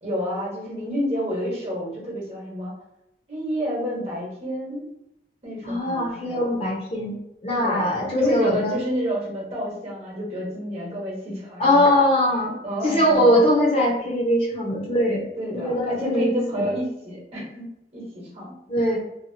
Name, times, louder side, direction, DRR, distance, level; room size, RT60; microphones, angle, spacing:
voice 1, 0.0-2.7 3.3-4.9 5.4-6.4 7.6-12.0 12.6-13.4 15.4-18.5, equal, 35° right, -3 dB, 1.1 m, -29 dB
voice 2, 5.6-7.2 7.4-8.8 11.6-12.6 12.8-15.3 15.5-16.7 18.7-19.0, left 1 dB, 35° left, -3 dB, 0.8 m, -21 dB
2.8 x 2.3 x 2.7 m, 0.84 s
head